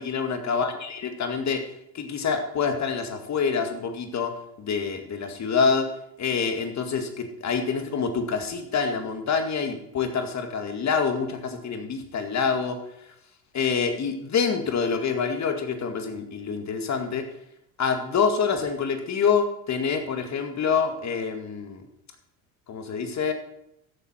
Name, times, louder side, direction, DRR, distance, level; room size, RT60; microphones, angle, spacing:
voice 1, 0.0-1.6 1.9-5.9 6.2-12.8 13.5-17.2 17.8-21.8 22.7-23.3, left 5 dB, 40° left, 6 dB, 2.1 m, -26 dB
14.0 x 8.4 x 4.4 m, 0.79 s
hypercardioid pair, 70°, 44 cm